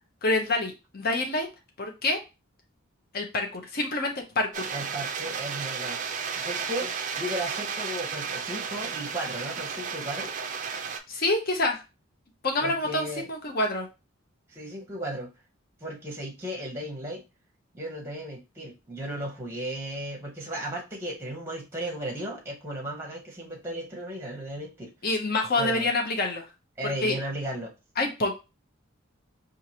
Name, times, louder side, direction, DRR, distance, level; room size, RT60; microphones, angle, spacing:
voice 1, 0.2-1.5 1.8-2.2 3.1-4.7 11.1-11.8 12.4-13.9 25.0-26.4 26.8-27.2 28.0-28.3, left 2 dB, 45° left, 3 dB, 0.7 m, -27 dB
sound 1, 4.5-11.0, right 6 dB, 35° right, 0.4 m, -33 dB
voice 2, 4.7-6.0 6.3-10.3 12.6-13.3 14.5-15.3 15.8-17.2 17.7-24.9 25.6-25.9 26.8-27.7, right 1 dB, 10° right, 0 dB, 0.9 m, -35 dB
4.5 x 2.5 x 2.8 m, 0.27 s
head